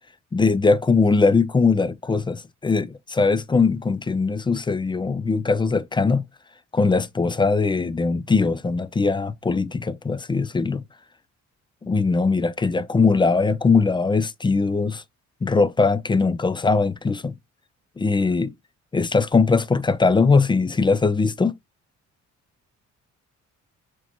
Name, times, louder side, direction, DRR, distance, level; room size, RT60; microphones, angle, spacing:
voice 1, 0.3-6.2 6.7-10.8 11.8-15.0 15.4-17.3 18.0-18.5 18.9-21.5, left 4 dB, 15° left, 0.3 m, -20 dB
6.2 x 3.0 x 2.8 m
cardioid pair, 90°, 30 cm